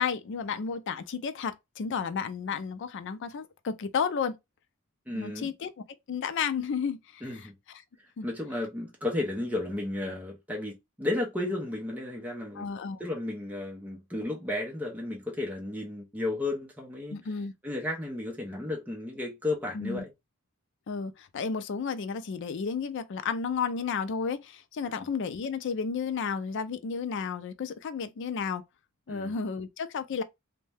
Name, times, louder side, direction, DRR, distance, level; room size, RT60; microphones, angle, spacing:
voice 1, 0.0-4.4 5.1-7.8 8.2-8.3 12.6-13.0 17.1-17.5 19.7-20.0 20.9-28.6 29.1-30.2, left 6 dB, 60° left, 0.4 m, -32 dB
voice 2, 5.1-5.5 7.2-7.5 8.2-12.7 13.0-17.2 17.6-20.1 24.9-25.1 29.1-29.3, left 2 dB, 10° right, 0.7 m, -33 dB
2.6 x 2.2 x 3.3 m
head